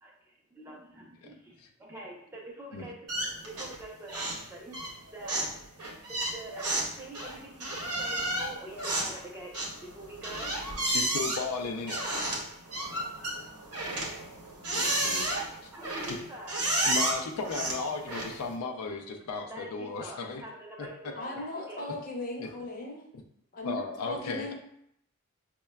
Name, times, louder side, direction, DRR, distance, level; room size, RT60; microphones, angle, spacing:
voice 1, 0.0-3.1 3.4-4.8 5.1-5.5 6.3-9.5 9.8-10.5 12.5-13.0 13.5-13.7 14.9-16.7 19.5-21.9, right 1 dB, 10° right, -2 dB, 0.5 m, -45 dB
sound 1, 3.1-3.8 4.1-4.5 4.7-18.5, right 1 dB, 80° right, 0.8 m, -32 dB
voice 2, 10.9-12.0 14.7-15.2 16.1-16.2 16.8-20.4 20.8-20.9 22.4-22.5 23.6-24.5, left 4 dB, 80° left, 3 dB, 0.4 m, -35 dB
voice 3, 21.2-23.0 23.5-24.5, left 1 dB, 40° left, -1 dB, 0.7 m, -37 dB
5.4 x 2.2 x 2.2 m, 0.73 s
head